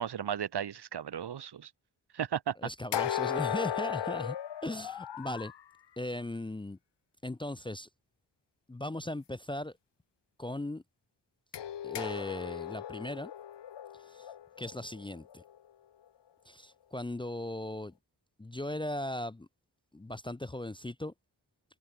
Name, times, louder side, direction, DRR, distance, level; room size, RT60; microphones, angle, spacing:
voice 1, 0.0-1.7 2.1-2.6, right 8 dB, 75° right, 1.3 m, -35 dB
voice 2, 2.6-4.4 4.6-5.5 6.0-6.8 7.2-7.9 8.7-9.8 10.4-10.8 11.8-13.3 14.0-14.3 14.6-15.4 16.5-17.9 18.4-19.5 19.9-21.1, left 1 dB, 10° left, 0.5 m, -38 dB
sound 1, 2.9-5.6 11.5-15.6, left 10 dB, 90° left, 1.2 m, -36 dB
wide cardioid pair, 135°, 41 cm